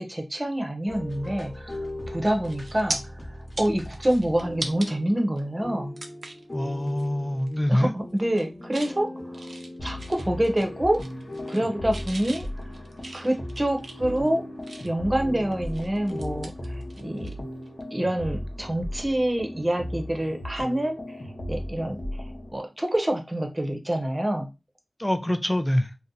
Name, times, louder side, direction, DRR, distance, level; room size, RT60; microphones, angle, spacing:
voice 1, 0.0-3.1 3.6-6.0 7.7-9.1 9.8-11.1 11.5-12.5 13.1-14.5 14.8-17.3 17.9-21.2 21.5-22.0 22.5-24.5, right 1 dB, 25° right, 0.8 m, -26 dB
sound 1, 0.9-13.5 14.0-16.5, left 1 dB, 40° left, 1.1 m, -40 dB
sound 2, 1.9-2.1 2.4-3.0 3.4-4.9 5.4-5.5 6.0-6.5 6.9-7.1 7.4-7.8 8.2-8.9 9.3-10.7 10.9-11.6 11.9-15.1 15.5-17.3 17.6-17.8 19.7-19.9, right 2 dB, 80° right, 0.5 m, -39 dB
voice 2, 6.5-7.9 25.0-25.9, left 1 dB, 15° left, 0.4 m, -24 dB
sound 3, 9.8-22.6, left 1 dB, 60° left, 0.8 m, -37 dB
2.7 x 2.1 x 3.8 m
wide cardioid pair, 55°, 0 cm